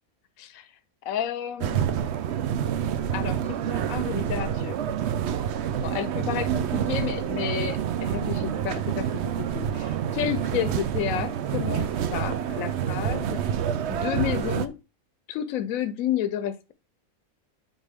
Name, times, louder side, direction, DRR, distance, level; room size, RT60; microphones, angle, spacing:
voice 1, 0.4-0.7 1.0-1.8 3.1-4.8 5.8-13.4 13.9-14.8 15.3-16.7, left 10 dB, 75° left, 1.0 m, -31 dB
sound 1, 1.6-14.7, right 9 dB, 60° right, 0.8 m, -28 dB
8.2 x 5.1 x 3.5 m
omnidirectional pair, 1.5 m